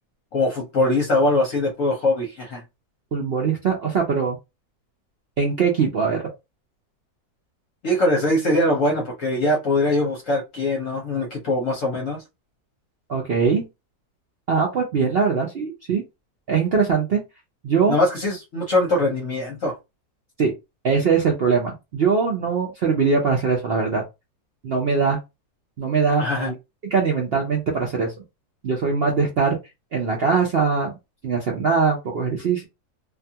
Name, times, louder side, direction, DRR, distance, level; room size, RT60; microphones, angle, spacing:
voice 1, 0.3-2.6 7.8-12.2 17.9-19.7 26.2-26.5, left 1 dB, 60° left, 1.0 m, -22 dB
voice 2, 3.1-4.4 5.4-6.2 13.1-13.6 14.5-16.0 16.5-17.2 17.6-18.0 20.4-20.5 20.8-24.0 24.6-25.2 25.8-26.5 26.9-28.1 28.6-29.6 29.9-30.9 31.2-32.7, right 5 dB, 65° right, 0.6 m, -21 dB
2.6 x 2.3 x 2.7 m
omnidirectional pair, 1.7 m